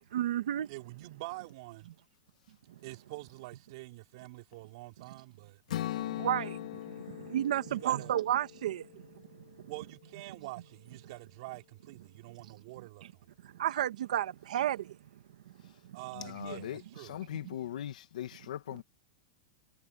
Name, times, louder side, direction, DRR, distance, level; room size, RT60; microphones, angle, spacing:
voice 1, 0.1-0.7 2.7-2.8 6.0-9.1 9.3-9.4 13.4-15.0 15.6-16.0, right 11 dB, 80° right, 2.1 m, -32 dB
voice 2, 0.7-1.9 2.8-5.6 7.7-8.1 9.7-13.3 15.9-17.1, right 21 dB, 45° right, 4.5 m, -46 dB
Strum, 5.7-9.9, left 13 dB, 70° left, 2.8 m, -40 dB
voice 3, 16.1-18.8, left 11 dB, 85° left, 2.2 m, -41 dB
supercardioid pair, 180°, 4 cm